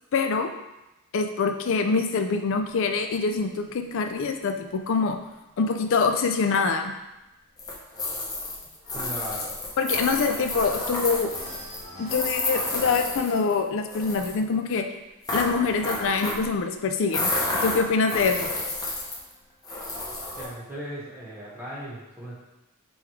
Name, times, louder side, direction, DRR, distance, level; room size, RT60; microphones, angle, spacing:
voice 1, 0.1-0.5 1.1-5.2 5.6-6.9 9.8-11.3 12.0-14.9 15.3-17.3 17.6-18.5, left 4 dB, 60° left, 6 dB, 0.4 m, -25 dB
sound 1, 2.8-6.1 6.5-6.8 7.1-7.2 7.6-10.9 11.2-17.8 18.6-19.6, equal, 35° left, 1.3 m, -48 dB
sound 2, 7.6-13.6 13.9-14.3 15.2-16.5 17.1-19.3 19.6-20.5, left 2 dB, 15° left, 0.7 m, -30 dB
voice 2, 8.9-9.5 20.4-22.4, equal, 10° right, -8 dB, 1.0 m, -37 dB
3.4 x 3.1 x 4.7 m, 0.98 s
head